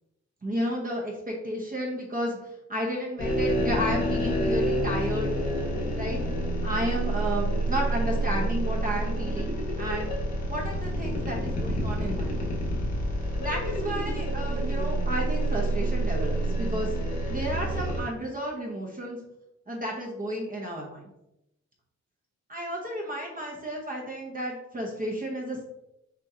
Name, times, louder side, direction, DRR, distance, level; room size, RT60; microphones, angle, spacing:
voice 1, 0.4-2.4 2.7-5.3 6.0-6.2 6.6-10.1 10.5-12.5 13.4-16.9 17.3-19.2 19.7-21.1 22.5-25.6, equal, 30° right, -2 dB, 0.9 m, -32 dB
sound 1, 3.2-18.0, right 1 dB, 70° left, 1.6 m, -28 dB
6.1 x 3.0 x 2.8 m, 0.86 s
wide cardioid pair, 140°, 29 cm